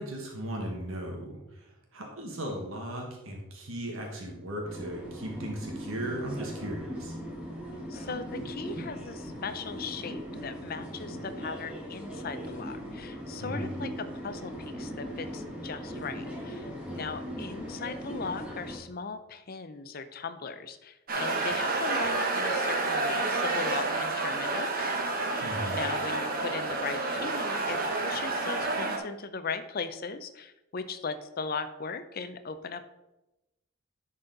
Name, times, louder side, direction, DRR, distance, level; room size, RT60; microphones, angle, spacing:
voice 1, 0.0-1.6 1.9-7.2 13.4-13.7 16.9-17.2 25.4-25.8, right 1 dB, 75° right, 0 dB, 1.5 m, -37 dB
sound 1, 4.6-18.8, equal, 5° right, 1.5 m, -39 dB
voice 2, 7.9-24.9 25.3-32.8, left 4 dB, 45° left, 10 dB, 0.5 m, -38 dB
sound 2, 21.1-29.0, right 3 dB, 45° right, 1.1 m, -29 dB
10.5 x 4.2 x 3.9 m, 0.98 s
head